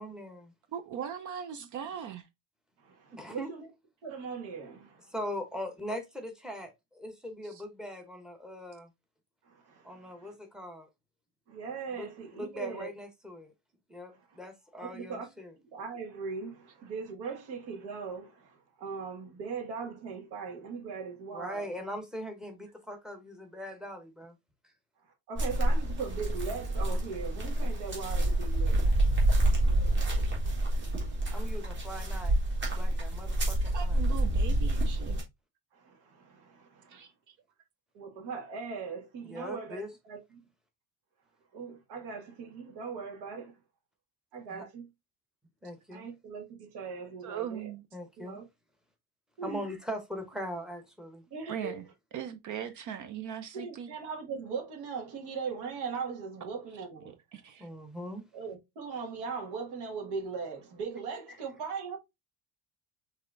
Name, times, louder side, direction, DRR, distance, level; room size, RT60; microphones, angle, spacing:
voice 1, 0.0-0.5 3.1-3.5 5.1-8.9 9.8-10.9 11.9-12.1 12.3-13.5 13.9-15.5 21.3-24.3 31.3-32.4 32.7-34.0 39.3-39.9 44.5-44.7 45.6-46.0 47.9-48.4 49.4-51.2 57.6-58.2, equal, ahead, 1.0 m, -40 dB
voice 2, 0.7-2.3 33.7-35.2 36.9-37.3 47.2-47.8 51.5-51.8 52.1-53.9 57.3-57.7, right 9 dB, 45° right, 0.6 m, -39 dB
voice 3, 2.8-3.7 4.0-5.1 9.4-10.3 11.5-12.9 14.1-14.4 14.8-15.3 15.7-21.8 25.3-29.0 29.6-30.3 35.7-37.1 37.9-40.2 41.5-43.6 44.3-44.9 45.9-47.7 48.2-48.4 49.4-49.6 51.3-51.8 53.5-57.1 58.3-62.0, right 5 dB, 65° right, 1.9 m, -39 dB
sound 1, 25.4-35.2, right 1 dB, 25° right, 2.0 m, -28 dB
5.7 x 3.4 x 2.6 m
cardioid pair, 155°, 44 cm